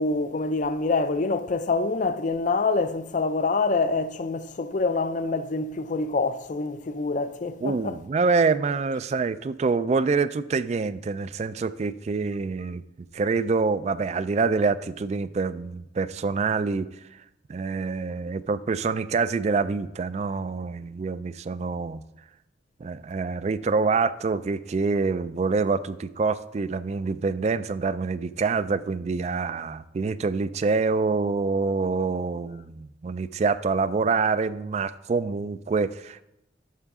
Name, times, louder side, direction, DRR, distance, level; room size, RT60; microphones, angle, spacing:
voice 1, 0.0-8.0, left 3 dB, 40° left, 0.4 m, -26 dB
voice 2, 7.6-12.8 13.1-17.2 17.5-22.0 22.8-36.2, right 4 dB, 35° right, 0.3 m, -26 dB
11.0 x 6.9 x 3.6 m
head